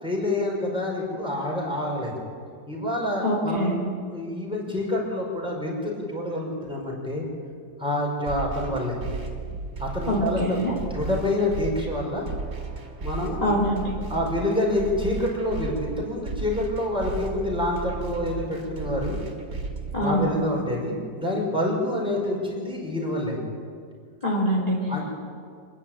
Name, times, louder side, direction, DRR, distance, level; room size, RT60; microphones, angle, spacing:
voice 1, 0.0-2.1 2.7-7.2 7.8-9.0 9.8-10.6 10.9-12.2 13.0-13.5 14.1-19.2 20.0-23.4 24.9-25.2, left 1 dB, 5° right, -3 dB, 5.4 m, -27 dB
voice 2, 3.2-3.8 10.1-10.7 13.4-13.9 19.9-20.3 24.2-24.8, equal, 20° left, -5 dB, 3.3 m, -24 dB
sound 1, 8.3-20.3, right 4 dB, 70° right, 2.8 m, -34 dB
27.0 x 11.0 x 9.0 m, 2.2 s
omnidirectional pair, 1.9 m